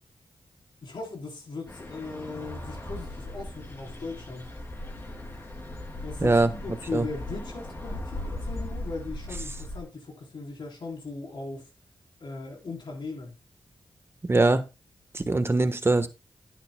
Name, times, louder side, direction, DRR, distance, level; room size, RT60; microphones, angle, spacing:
voice 1, 0.8-4.6 6.0-11.7 12.2-13.3, left 3 dB, 65° left, 3.8 m, -38 dB
sound 1, 1.7-9.8, left 1 dB, 30° left, 3.0 m, -38 dB
voice 2, 14.3-14.6 15.1-16.1, right 2 dB, 25° right, 1.2 m, -22 dB
10.5 x 9.9 x 2.2 m
cardioid pair, 65°, 9 cm